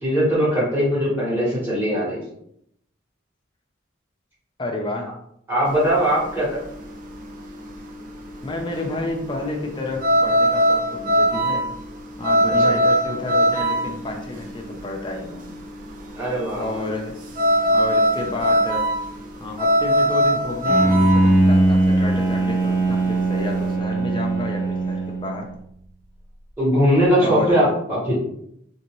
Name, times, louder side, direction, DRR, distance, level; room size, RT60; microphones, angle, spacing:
voice 1, 0.0-2.2 5.5-6.6 12.6-12.7 16.1-16.7 26.6-28.2, equal, 10° right, -8 dB, 1.4 m, -20 dB
voice 2, 4.6-5.1 8.4-11.7 12.2-15.5 16.5-17.3 17.7-18.9 19.4-25.5 27.2-27.6, left 2 dB, 25° left, 1 dB, 0.5 m, -30 dB
sound 1, 5.7-23.7, equal, 40° right, 0.4 m, -21 dB
Bowed string instrument, 20.7-25.6, right 2 dB, 85° right, 1.4 m, -20 dB
2.9 x 2.8 x 3.0 m, 0.72 s
head